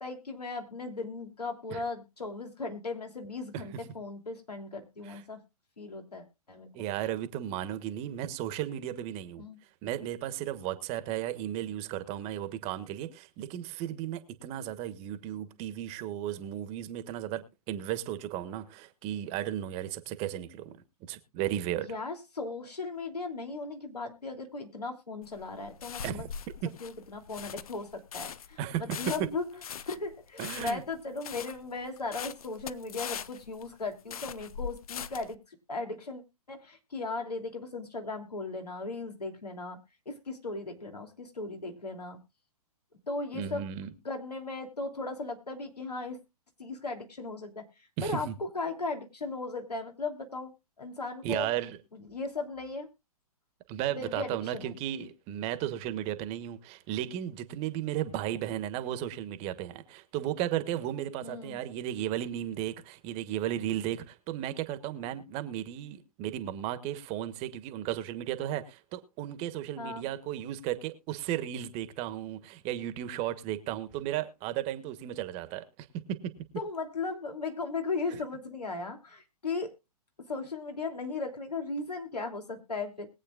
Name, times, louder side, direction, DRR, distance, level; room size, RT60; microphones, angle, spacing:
voice 1, 0.0-5.4 5.8-6.7 9.4-9.6 21.9-26.3 26.8-28.6 29.0-29.6 29.9-35.4 35.7-36.2 36.5-39.8 40.1-42.2 43.1-43.6 44.0-46.2 46.6-47.6 48.0-48.3 48.5-50.5 50.8-51.5 51.9-52.9 54.0-54.7 61.2-61.6 69.8-70.1 76.5-79.7 80.3-83.1, left 3 dB, 90° left, 2.9 m, -37 dB
voice 2, 6.7-9.4 9.8-20.8 21.1-21.9 26.0-26.2 28.6-29.0 30.4-30.8 43.3-43.9 48.0-48.3 51.2-51.8 53.7-76.2, right 12 dB, 30° right, 1.3 m, -35 dB
sound 1, 25.2-35.4, left 7 dB, 65° left, 0.8 m, -41 dB
21.5 x 8.3 x 2.4 m
hypercardioid pair, 120°, 20 cm